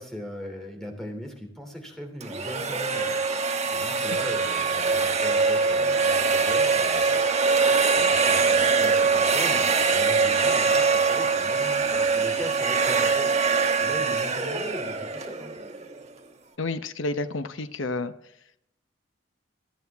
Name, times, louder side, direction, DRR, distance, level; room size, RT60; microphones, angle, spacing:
voice 1, 0.0-3.2 3.7-7.3 7.9-13.3 13.8-15.5, equal, ahead, 2 dB, 2.9 m, -39 dB
sound 1, 2.2-16.1, right 4 dB, 30° right, 1.5 m, -23 dB
voice 2, 16.6-18.1, left 2 dB, 70° left, 10 dB, 0.9 m, -30 dB
25.5 x 9.1 x 3.6 m, 0.76 s
head